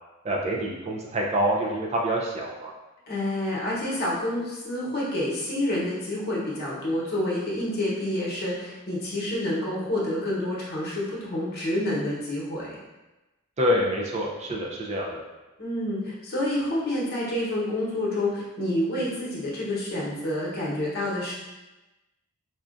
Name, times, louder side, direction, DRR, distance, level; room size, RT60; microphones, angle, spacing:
voice 1, 0.2-2.7 13.6-15.2, equal, 30° right, -2 dB, 0.4 m, -26 dB
voice 2, 3.1-12.8 15.6-21.3, left 1 dB, 50° left, -5 dB, 1.0 m, -28 dB
4.3 x 2.4 x 2.5 m, 1.1 s
head